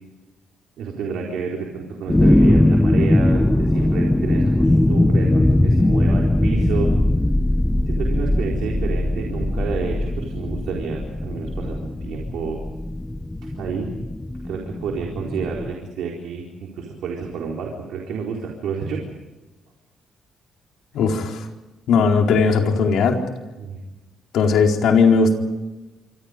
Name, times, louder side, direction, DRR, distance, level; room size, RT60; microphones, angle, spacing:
voice 1, 0.8-6.9 7.9-12.6 13.5-13.9 14.4-19.0 23.6-23.8, right 5 dB, 80° right, -1 dB, 4.2 m, -30 dB
sound 1, 2.1-15.7, left 1 dB, 10° left, 1.1 m, -20 dB
voice 2, 20.9-21.4 21.9-23.2 24.3-25.3, left 5 dB, 80° left, 2 dB, 4.2 m, -17 dB
26.5 x 26.0 x 5.2 m, 1.1 s
cardioid pair, 90°, 0 cm